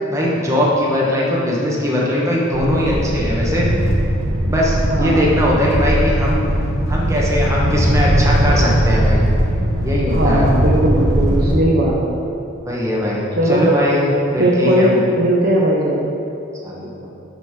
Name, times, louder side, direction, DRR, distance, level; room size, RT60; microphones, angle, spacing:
voice 1, 0.1-3.7 4.5-6.5 6.9-9.2 9.8-10.5 12.6-14.0 14.3-14.9 16.6-16.9, left 1 dB, 15° right, -5 dB, 1.3 m, -19 dB
sound 1, 2.5-11.6, right 1 dB, 85° right, 1.0 m, -19 dB
voice 2, 4.9-5.2 10.1-12.3 13.4-13.7 14.4-16.2 17.0-17.1, right 1 dB, 50° right, -3 dB, 0.7 m, -18 dB
7.0 x 5.4 x 4.8 m, 2.7 s
head